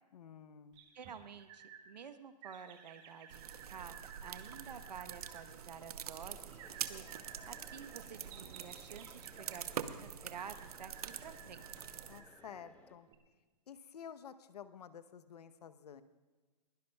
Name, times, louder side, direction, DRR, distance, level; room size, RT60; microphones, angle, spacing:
voice 1, 0.1-0.8 12.1-13.1 13.7-16.0, left 8 dB, 70° left, 11 dB, 0.9 m, -51 dB
sound 1, 0.7-1.8 2.4-5.4 6.6-9.7 10.3-12.6 13.1-13.2, right 7 dB, 25° right, 1.6 m, -55 dB
voice 2, 0.9-4.0 4.2-6.6 6.9-7.2 7.5-11.9, right 7 dB, 80° right, 10 dB, 1.1 m, -51 dB
sound 2, 3.3-12.2, right 9 dB, 60° right, 0.9 m, -46 dB
sound 3, 6.2-13.0, left 2 dB, 5° left, 1.1 m, -62 dB
22.0 x 16.5 x 2.3 m, 1.3 s
hypercardioid pair, 140°, 21 cm